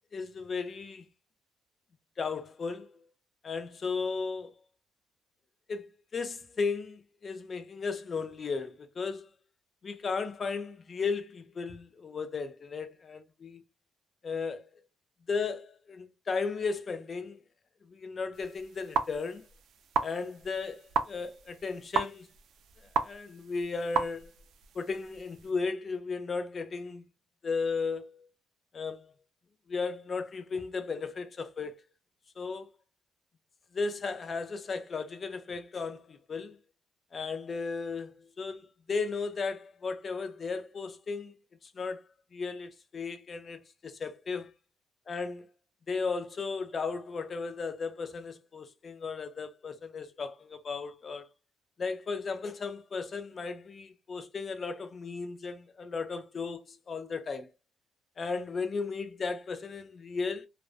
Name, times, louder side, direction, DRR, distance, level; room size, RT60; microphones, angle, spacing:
voice 1, 0.1-1.1 2.2-2.9 3.4-4.5 5.7-5.9 6.1-9.3 9.8-13.6 14.2-14.7 15.3-17.4 17.9-19.4 20.0-22.3 23.0-24.3 24.7-27.0 27.4-28.3 28.7-29.1 29.7-31.7 32.4-32.7 33.7-36.6 37.1-41.3 41.6-42.0 42.3-44.5 45.1-45.4 45.9-51.3 51.8-57.5 58.2-60.5, left 4 dB, 45° left, 0.5 m, -35 dB
sound 1, 18.3-25.5, right 6 dB, 70° right, 0.4 m, -35 dB
2.4 x 2.1 x 2.4 m
cardioid pair, 90°, 0 cm